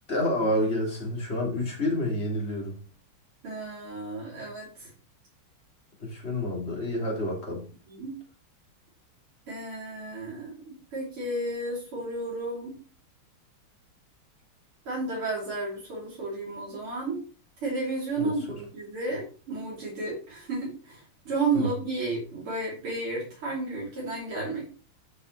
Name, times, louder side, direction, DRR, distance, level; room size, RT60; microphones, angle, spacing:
voice 1, 0.1-2.8 6.0-7.6 18.2-18.3 21.5-21.7, left 1 dB, 30° left, -1 dB, 3.3 m, -28 dB
voice 2, 3.4-4.9 7.9-8.2 9.5-12.8 14.9-17.2 17.6-24.7, right 3 dB, 80° right, -6 dB, 4.2 m, -32 dB
13.0 x 5.8 x 3.3 m, 0.36 s
omnidirectional pair, 2.3 m